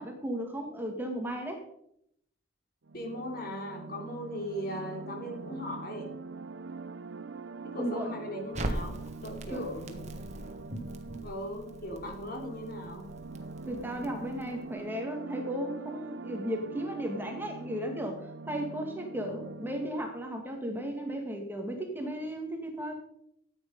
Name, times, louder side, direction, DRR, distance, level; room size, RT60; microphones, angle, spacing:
voice 1, 0.0-1.6 7.8-8.1 9.5-9.7 13.7-22.9, equal, 10° right, 3 dB, 1.8 m, -35 dB
sound 1, 2.8-20.2, right 3 dB, 75° right, 0.7 m, -44 dB
voice 2, 2.9-6.1 7.6-10.0 11.2-13.1, equal, 50° left, 2 dB, 3.4 m, -39 dB
Crackle, 8.5-14.7, right 1 dB, 35° right, 1.5 m, -41 dB
14.0 x 9.1 x 5.3 m, 0.74 s
head